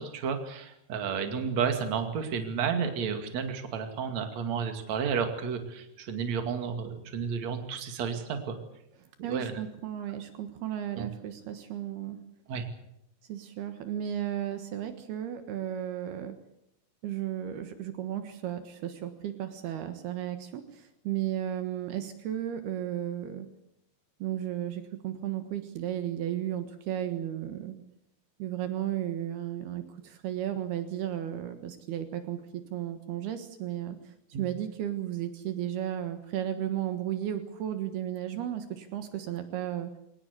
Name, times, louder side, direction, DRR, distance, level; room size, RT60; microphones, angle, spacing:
voice 1, 0.0-8.6 9.3-9.5 11.0-11.1 12.5-12.7 34.3-34.4, right 6 dB, 50° right, 6 dB, 3.2 m, -32 dB
voice 2, 9.2-12.2 13.3-16.4 17.0-23.5 24.2-27.8 28.4-39.9, right 11 dB, 75° right, 8 dB, 3.3 m, -34 dB
23.5 x 19.0 x 8.4 m, 0.78 s
omnidirectional pair, 4.7 m